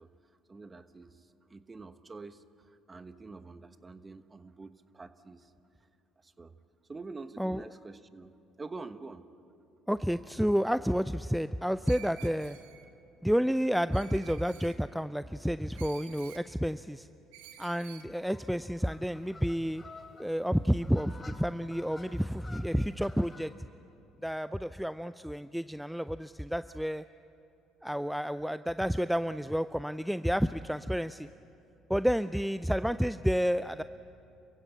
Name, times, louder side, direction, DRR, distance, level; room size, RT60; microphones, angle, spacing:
voice 1, 0.0-5.5 5.8-5.9 6.2-6.6 6.8-9.3, right 3 dB, 25° right, 11 dB, 1.2 m, -47 dB
voice 2, 9.9-12.6 13.2-17.1 17.6-19.8 20.2-23.5 24.2-27.0 27.8-31.3 31.9-33.8, equal, ahead, 13 dB, 0.4 m, -30 dB
Screech, 11.8-12.9 13.9-14.8 15.8-16.4 17.3-18.1, right 10 dB, 85° right, 1.3 m, -51 dB
sound 1, 18.1-23.5, left 3 dB, 25° left, 3.5 m, -52 dB
28.0 x 16.0 x 8.3 m, 2.8 s
hypercardioid pair, 65°, 0 cm